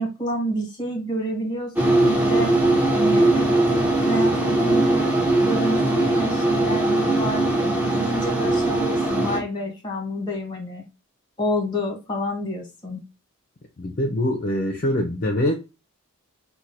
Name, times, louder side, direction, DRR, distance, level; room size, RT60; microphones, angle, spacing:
voice 1, 0.0-2.5 2.9-3.5 4.0-10.8 11.4-13.0, equal, 20° left, 1.2 m, -28 dB
sound 1, 1.8-9.4, right 2 dB, 10° right, 0.7 m, -20 dB
voice 2, 13.8-15.5, left 1 dB, 40° left, 0.5 m, -23 dB
4.4 x 2.2 x 2.6 m
head